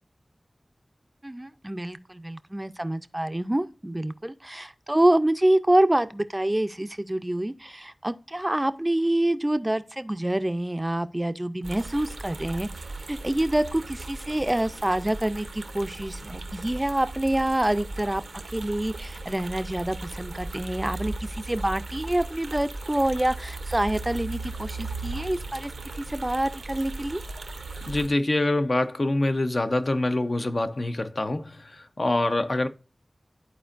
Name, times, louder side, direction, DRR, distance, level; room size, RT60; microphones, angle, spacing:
voice 1, 1.2-12.7 13.1-18.2 18.5-25.7 26.0-27.2, right 1 dB, 20° right, 0.4 m, -26 dB
sound 1, 11.6-28.1, right 2 dB, 90° right, 0.7 m, -37 dB
voice 2, 27.9-32.7, left 2 dB, 55° left, 0.6 m, -25 dB
12.5 x 4.4 x 2.5 m
wide cardioid pair, 65°, 0 cm